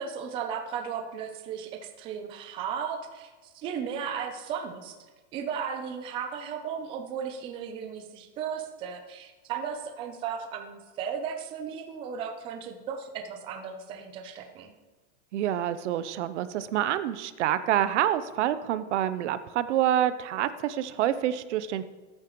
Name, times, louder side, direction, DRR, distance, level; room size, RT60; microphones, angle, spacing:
voice 1, 0.0-3.3 3.5-4.9 5.3-14.7, right 7 dB, 15° right, 5 dB, 0.4 m, -35 dB
voice 2, 15.3-21.8, right 11 dB, 75° right, 13 dB, 0.7 m, -27 dB
13.5 x 8.8 x 3.1 m, 1.3 s
supercardioid pair, 170°, 36 cm